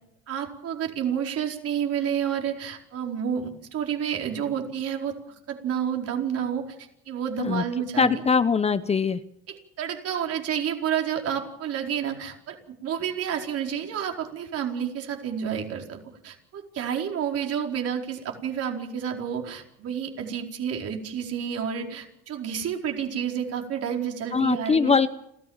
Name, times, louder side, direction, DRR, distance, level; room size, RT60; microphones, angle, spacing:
voice 1, 0.3-6.6 7.1-8.2 9.5-24.9, right 8 dB, 55° right, 3 dB, 4.6 m, -30 dB
voice 2, 8.0-9.2 24.3-25.1, left 5 dB, 20° left, 13 dB, 0.8 m, -22 dB
29.5 x 14.5 x 7.3 m, 0.78 s
cardioid pair, 115°, 29 cm